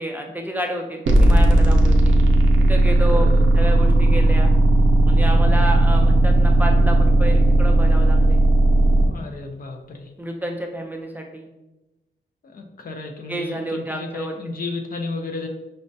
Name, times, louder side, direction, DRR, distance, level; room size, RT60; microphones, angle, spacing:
voice 1, 0.0-2.1 2.7-3.3 3.5-4.5 5.1-8.4 10.2-11.5 13.3-14.4, right 1 dB, 10° right, 1 dB, 0.4 m, -29 dB
sound 1, 1.1-9.1, right 1 dB, 85° right, 0.5 m, -15 dB
voice 2, 2.9-3.4 9.0-10.1 12.4-15.5, left 3 dB, 50° left, 3 dB, 0.5 m, -33 dB
5.1 x 2.1 x 2.6 m, 0.98 s
wide cardioid pair, 100°, 20 cm